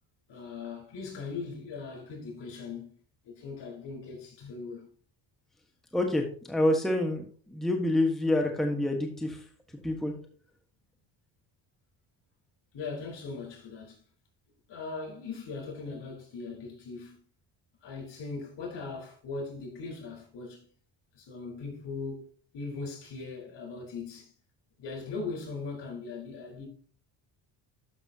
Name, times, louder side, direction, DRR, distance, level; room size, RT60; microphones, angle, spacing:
voice 1, 0.3-3.0 3.2-4.9 12.7-14.0 14.7-17.2 17.8-20.7 21.1-24.3 24.8-26.7, left 4 dB, 60° left, 4.3 m, -39 dB
voice 2, 5.9-9.4 9.8-10.1, left 1 dB, ahead, 1.4 m, -27 dB
12.0 x 6.1 x 2.9 m
cardioid pair, 85°, 47 cm